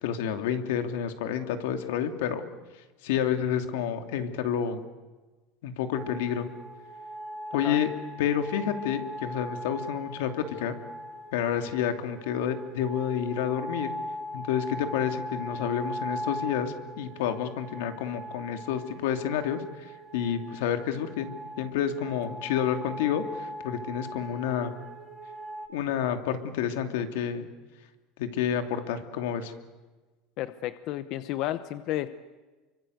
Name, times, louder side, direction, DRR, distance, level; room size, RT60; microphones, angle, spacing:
voice 1, 0.0-2.4 3.0-4.8 5.6-6.5 7.5-7.9 8.2-10.8 11.3-13.9 14.3-21.3 21.6-24.7 25.7-27.5 28.2-29.5, left 9 dB, 85° left, 7 dB, 2.7 m, -29 dB
sound 1, 5.9-25.7, equal, 5° right, 3.0 m, -40 dB
voice 2, 30.4-32.1, left 14 dB, 40° left, 12 dB, 0.9 m, -32 dB
30.0 x 24.5 x 8.0 m, 1.3 s
cardioid pair, 175°, 0 cm